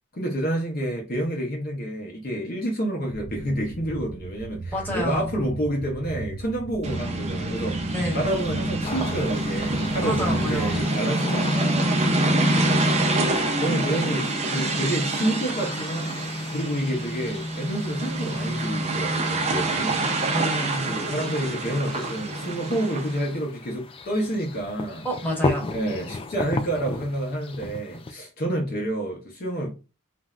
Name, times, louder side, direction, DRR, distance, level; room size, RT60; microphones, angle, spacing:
voice 1, 0.1-12.9 13.6-16.2 16.5-20.1 20.9-25.1 25.7-29.8, right 1 dB, 45° left, 0.8 m, -29 dB
sound 1, 3.1-10.8, right 3 dB, 70° right, 0.4 m, -37 dB
voice 2, 4.7-5.3 7.9-8.4 10.0-10.8 12.8-13.0 20.3-21.0 25.0-25.7, left 1 dB, 10° left, 1.1 m, -29 dB
sound 2, 6.8-23.3, right 2 dB, 30° right, 0.6 m, -26 dB
sound 3, 8.8-28.1, left 3 dB, 25° left, 0.3 m, -36 dB
3.1 x 2.6 x 2.4 m
head